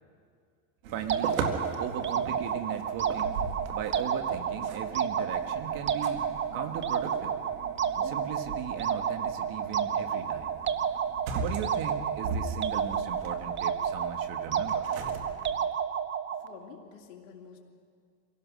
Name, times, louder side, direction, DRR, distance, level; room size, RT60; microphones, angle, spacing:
sound 1, 0.8-15.6, right 4 dB, 90° right, 2.1 m, -40 dB
voice 1, 0.9-3.4 3.7-6.2 6.5-7.4 8.0-10.5 11.4-14.9, right 9 dB, 55° right, 7 dB, 1.9 m, -38 dB
sound 2, 1.1-16.5, right 8 dB, 30° right, 0.9 m, -31 dB
voice 2, 16.3-17.6, left 7 dB, 80° left, -1 dB, 2.7 m, -49 dB
25.5 x 17.5 x 6.4 m, 2.1 s
supercardioid pair, 110°, 40 cm